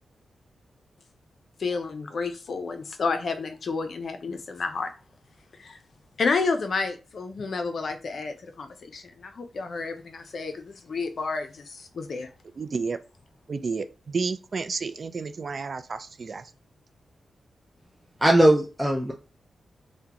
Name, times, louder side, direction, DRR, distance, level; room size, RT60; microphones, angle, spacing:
voice 1, 1.6-4.9 5.6-5.8 6.2-12.3, left 4 dB, 65° left, 0.5 m, -30 dB
voice 2, 12.6-13.0 13.5-16.4, right 4 dB, 55° right, 0.3 m, -31 dB
voice 3, 18.2-19.1, right 1 dB, 5° right, 0.5 m, -19 dB
3.6 x 2.1 x 2.9 m
cardioid pair, 50°, 0 cm